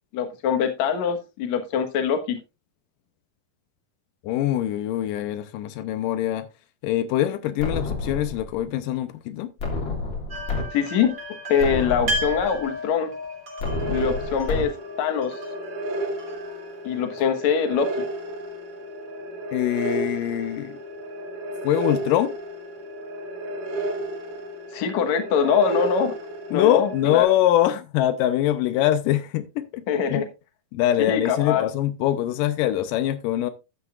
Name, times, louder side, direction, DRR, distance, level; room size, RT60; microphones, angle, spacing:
voice 1, 0.1-2.4 10.7-11.1 11.5-13.1 13.9-14.7 15.0-15.4 16.8-17.9 24.7-26.2 26.5-27.3 29.9-30.3 31.0-31.6, left 7 dB, 65° left, 2.4 m, -23 dB
voice 2, 4.2-6.5 6.8-9.5 19.5-20.8 21.6-22.4 26.5-29.9 30.1-30.3 30.7-33.5, left 12 dB, 85° left, 2.4 m, -23 dB
sound 1, 7.6-8.6 9.6-10.6 11.1-11.2 11.6-12.6 13.6-14.6, left 3 dB, 40° left, 2.4 m, -29 dB
sound 2, 10.3-17.2, equal, 30° right, 3.1 m, -34 dB
sound 3, 13.7-27.2, right 1 dB, 80° right, 3.6 m, -32 dB
13.0 x 9.2 x 2.4 m
omnidirectional pair, 3.7 m